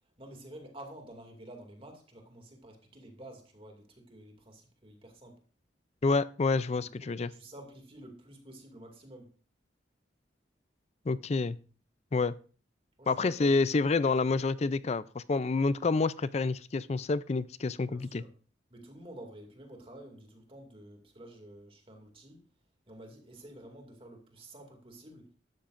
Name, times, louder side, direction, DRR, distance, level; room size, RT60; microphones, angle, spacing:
voice 1, 0.2-5.4 7.2-9.3 13.0-13.5 17.9-18.3 18.7-22.4 22.9-25.3, right 1 dB, 30° right, 3 dB, 2.4 m, -50 dB
voice 2, 6.0-7.3 11.1-11.6 12.1-12.3 13.1-18.2, left 3 dB, 35° left, 17 dB, 0.4 m, -28 dB
13.0 x 12.0 x 2.6 m, 0.39 s
head